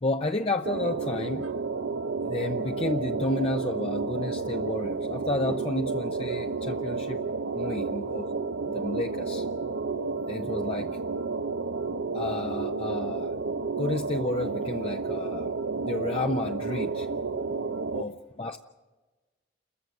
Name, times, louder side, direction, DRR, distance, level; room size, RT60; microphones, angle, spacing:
voice 1, 0.0-1.5 2.2-7.2 7.5-8.3 8.7-9.5 10.3-11.0 12.1-13.3 13.8-15.5 15.8-17.1 17.9-18.6, left 2 dB, 30° left, 5 dB, 0.6 m, -31 dB
sound 1, 0.6-18.0, right 4 dB, 85° right, 0.7 m, -31 dB
29.0 x 14.5 x 7.4 m, 1.2 s
head